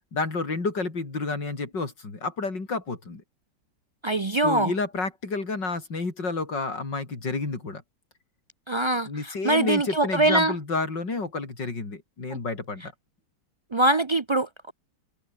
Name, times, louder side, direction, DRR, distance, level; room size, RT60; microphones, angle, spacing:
voice 1, 0.1-3.2 4.3-7.8 9.1-12.9, left 3 dB, 80° left, 5.2 m, -30 dB
voice 2, 4.0-4.7 8.7-10.6 12.3-12.4 13.7-14.7, right 2 dB, 50° right, 0.3 m, -23 dB
omnidirectional pair, 1.9 m